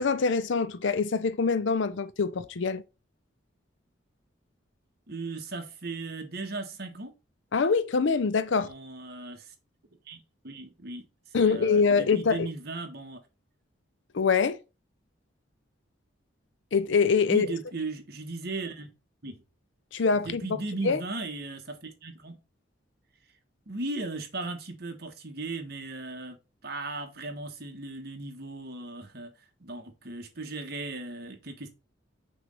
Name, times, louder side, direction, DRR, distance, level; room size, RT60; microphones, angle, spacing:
voice 1, 0.0-2.8 7.5-8.7 11.3-12.5 14.1-14.6 16.7-17.5 19.9-20.6 20.8-21.0, left 5 dB, 70° left, 0.5 m, -24 dB
voice 2, 5.1-7.1 8.5-9.5 10.1-11.0 11.3-13.2 17.3-18.9 19.2-19.4 20.1-22.4 23.7-26.4 26.6-29.3 29.6-31.7, right 2 dB, 50° right, 1.3 m, -37 dB
6.0 x 3.1 x 5.4 m
head